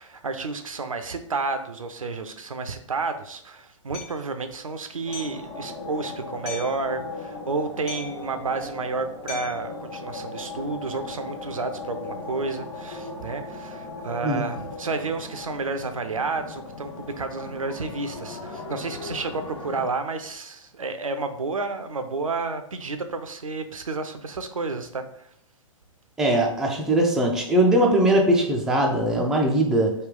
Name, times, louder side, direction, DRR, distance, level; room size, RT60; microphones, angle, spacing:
voice 1, 0.0-25.3, right 3 dB, 80° right, 8 dB, 0.5 m, -31 dB
Hammer, 3.9-4.2 5.1-5.4 6.5-6.8 7.9-8.3 9.3-9.7, left 4 dB, 30° left, 1.2 m, -38 dB
sound 1, 5.1-19.9, left 3 dB, 50° left, 0.7 m, -38 dB
voice 2, 26.2-29.9, right 1 dB, 5° right, -1 dB, 0.3 m, -20 dB
3.2 x 2.3 x 3.7 m, 0.66 s
figure-of-eight pair, 115°, 17 cm